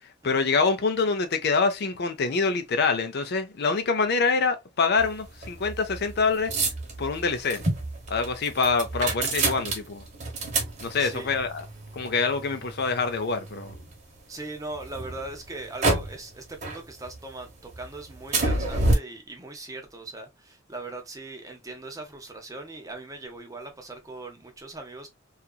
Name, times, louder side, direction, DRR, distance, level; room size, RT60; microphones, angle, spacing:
voice 1, 0.2-6.5 7.0-7.6 8.1-10.0 10.8-11.6 11.9-13.7, left 4 dB, 55° left, 0.5 m, -25 dB
sound 1, 5.0-14.2 14.7-16.3 16.6-17.4 17.7-18.9, right 2 dB, 40° right, 0.9 m, -29 dB
voice 2, 11.0-11.3 14.3-25.1, right 2 dB, 15° right, 0.6 m, -40 dB
2.8 x 2.4 x 2.3 m
head